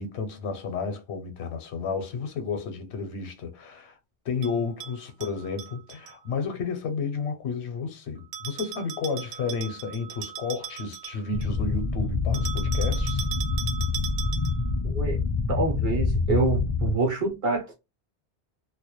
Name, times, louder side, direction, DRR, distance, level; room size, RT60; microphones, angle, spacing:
voice 1, 0.0-4.0 4.3-13.3, left 5 dB, 75° left, 0.8 m, -32 dB
Bell, 4.4-6.1 8.3-11.6 12.3-14.7, right 9 dB, 85° right, 0.9 m, -38 dB
sound 1, 11.3-16.9, left 4 dB, 45° left, 0.5 m, -26 dB
voice 2, 15.5-17.7, right 3 dB, 40° right, 0.6 m, -26 dB
2.2 x 2.1 x 2.8 m
omnidirectional pair, 1.1 m